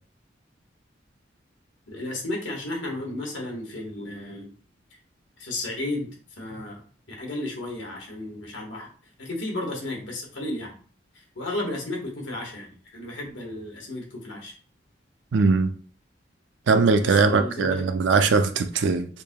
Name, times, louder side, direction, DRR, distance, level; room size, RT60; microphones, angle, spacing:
voice 1, 1.9-4.5 5.4-6.8 7.1-8.9 9.2-10.7 11.3-14.5 17.0-17.8, left 2 dB, 80° left, 1.4 m, -33 dB
voice 2, 15.3-15.7 16.7-19.1, right 4 dB, 75° right, 0.4 m, -20 dB
5.1 x 2.8 x 2.2 m
head